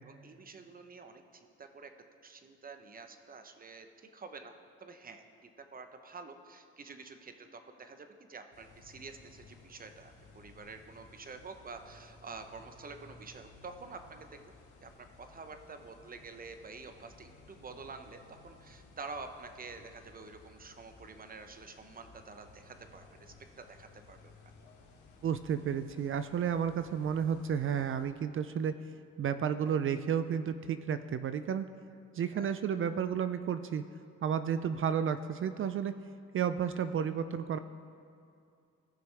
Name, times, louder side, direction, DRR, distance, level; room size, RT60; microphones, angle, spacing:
voice 1, 0.0-1.9 2.2-4.6 4.8-14.4 14.8-14.9 15.2-24.3 32.3-32.6, right 4 dB, 30° right, 7 dB, 0.8 m, -48 dB
sound 1, 8.5-28.1, left 3 dB, 75° left, 1.8 m, -58 dB
voice 2, 25.2-28.8 29.2-31.7 32.1-33.8 34.2-36.0 36.3-37.6, right 8 dB, 45° right, 11 dB, 0.4 m, -32 dB
18.0 x 6.0 x 3.3 m, 2.5 s
cardioid pair, 90°, 30 cm